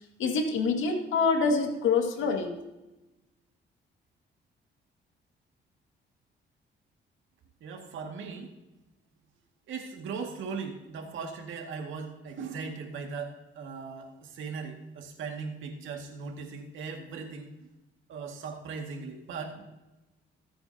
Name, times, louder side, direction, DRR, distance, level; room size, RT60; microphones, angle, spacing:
voice 1, 0.2-2.5, left 4 dB, 80° left, 3 dB, 2.2 m, -26 dB
voice 2, 7.6-8.5 9.7-17.7 18.1-19.7, right 5 dB, 75° right, 2 dB, 2.2 m, -38 dB
22.5 x 8.8 x 2.9 m, 1.0 s
cardioid pair, 90°, 20 cm